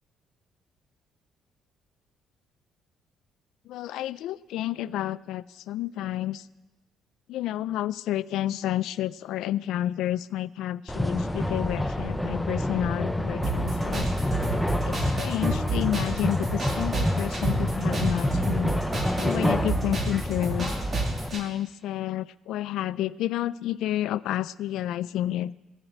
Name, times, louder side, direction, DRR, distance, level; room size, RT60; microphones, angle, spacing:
voice 1, 3.7-6.5 7.3-14.0 14.9-18.8 19.2-20.7 21.3-25.5, left 13 dB, 70° left, 17 dB, 0.4 m, -30 dB
sound 1, 10.9-21.3, left 1 dB, 5° left, 0.5 m, -28 dB
sound 2, 13.4-21.4, right 2 dB, 25° right, 2.1 m, -30 dB
17.0 x 7.3 x 8.0 m, 1.1 s
cardioid pair, 160°, 0 cm